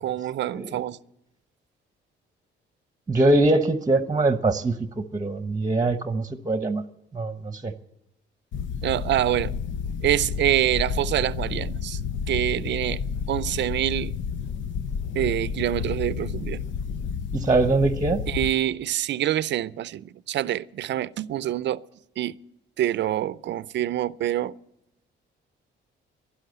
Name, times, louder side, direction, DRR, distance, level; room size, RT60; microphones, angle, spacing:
voice 1, 0.0-1.0 8.8-9.5 10.0-12.0 12.3-13.0 13.3-14.1 15.1-16.6 18.3-21.8 22.2-22.4 22.8-24.5, right 12 dB, 65° right, 0.5 m, -26 dB
voice 2, 3.1-6.8 7.1-7.7 17.3-18.2, right 2 dB, 20° right, 0.9 m, -23 dB
sound 1, 8.5-18.5, left 6 dB, 70° left, 0.8 m, -30 dB
11.5 x 11.5 x 8.0 m
cardioid pair, 90°, 20 cm